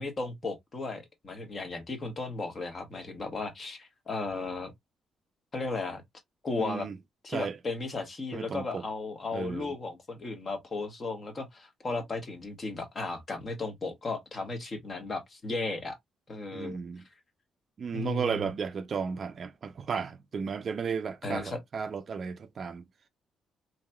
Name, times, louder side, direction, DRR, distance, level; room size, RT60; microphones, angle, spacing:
voice 1, 0.0-4.7 5.5-6.0 6.4-6.9 7.2-16.0 16.3-16.8 17.9-18.5 21.2-21.6, left 3 dB, 40° left, 1.2 m, -35 dB
voice 2, 6.6-7.0 7.3-7.6 8.3-8.8 9.3-9.7 16.5-17.0 17.8-22.8, right 6 dB, 45° right, 0.4 m, -34 dB
3.0 x 2.8 x 2.2 m
cardioid pair, 95°, 0 cm